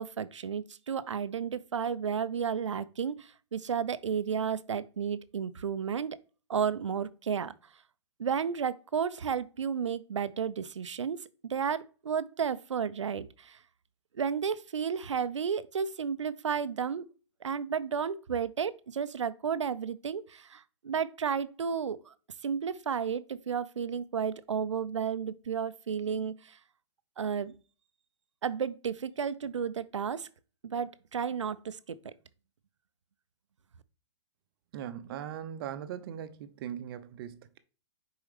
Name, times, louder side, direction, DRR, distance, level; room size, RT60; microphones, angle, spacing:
voice 1, 0.0-6.2 6.5-7.5 8.2-13.6 14.2-17.0 17.4-22.1 22.4-26.6 27.2-27.6 28.4-30.3 30.7-32.1, right 7 dB, 90° right, 0.5 m, -32 dB
voice 2, 34.7-37.6, right 9 dB, 55° right, 0.7 m, -40 dB
6.5 x 4.7 x 3.3 m
hypercardioid pair, 120°, 15 cm